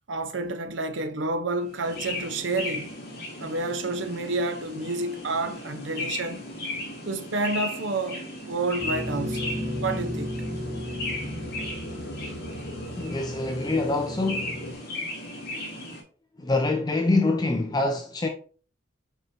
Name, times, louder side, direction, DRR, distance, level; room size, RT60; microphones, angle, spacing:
voice 1, 0.1-2.9 3.4-6.4 7.1-9.5 9.8-10.3, right 2 dB, 70° right, 0.8 m, -29 dB
sound 1, 1.7-16.0, left 1 dB, 50° left, 2.3 m, -36 dB
sound 2, 8.8-14.7, equal, 70° left, 2.9 m, -34 dB
voice 2, 13.0-14.6 16.4-18.3, left 2 dB, 20° left, 0.5 m, -25 dB
8.1 x 4.3 x 2.7 m
head